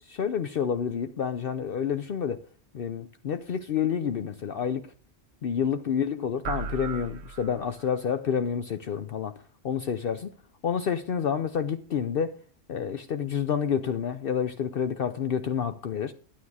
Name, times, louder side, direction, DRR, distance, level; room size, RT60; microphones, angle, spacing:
voice 1, 0.1-2.4 2.7-4.9 5.4-9.4 9.6-10.3 10.6-12.4 12.7-16.1, left 7 dB, 60° left, 0.8 m, -29 dB
sound 1, 6.4-8.0, right 6 dB, 90° right, 1.0 m, -36 dB
11.0 x 9.5 x 4.8 m
omnidirectional pair, 1.1 m